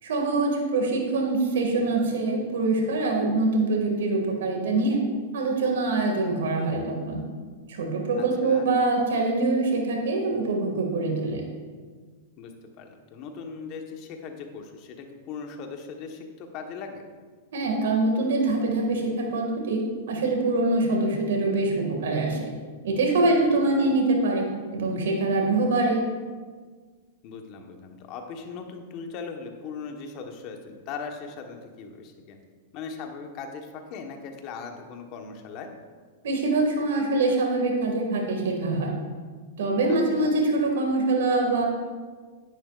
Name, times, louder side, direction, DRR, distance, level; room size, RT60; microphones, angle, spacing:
voice 1, 0.0-5.0 5.3-7.2 7.7-11.4 17.5-22.5 22.8-24.5 24.7-26.0 36.2-38.9 39.6-41.6, right 2 dB, 80° right, 1 dB, 2.1 m, -24 dB
voice 2, 8.2-8.7 12.4-17.0 23.7-24.0 27.2-32.4 32.7-35.7 39.9-40.4, left 5 dB, 45° left, 4 dB, 1.2 m, -39 dB
10.5 x 9.9 x 2.5 m, 1.5 s
hypercardioid pair, 135°, 0 cm